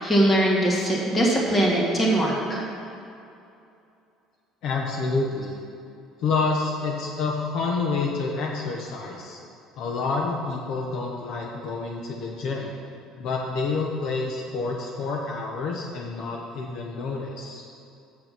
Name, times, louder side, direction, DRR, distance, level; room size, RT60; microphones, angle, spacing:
voice 1, 0.0-2.6, right 1 dB, 20° left, -3 dB, 2.0 m, -21 dB
voice 2, 4.6-5.6 6.2-9.4 9.8-12.7 13.2-17.6, left 4 dB, 60° left, 0 dB, 0.9 m, -28 dB
7.7 x 6.8 x 6.0 m, 2.6 s
cardioid pair, 135°, 0 cm